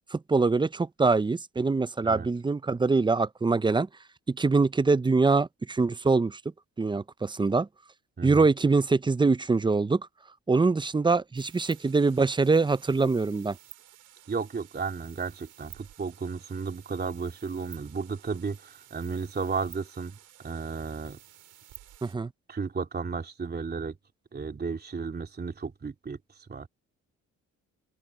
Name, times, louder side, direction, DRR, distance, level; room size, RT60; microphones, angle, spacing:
voice 1, 0.1-3.9 4.3-6.4 6.8-7.7 8.2-10.0 10.5-13.6 22.0-22.3, right 4 dB, 15° right, 0.6 m, -24 dB
voice 2, 8.2-8.5 14.3-20.2 20.4-21.2 22.5-24.0 24.3-26.2 26.5-26.7, right 5 dB, 30° right, 3.3 m, -33 dB
sound 1, 11.3-22.1, right 12 dB, 80° right, 4.7 m, -53 dB
open air
cardioid pair, 90°, 30 cm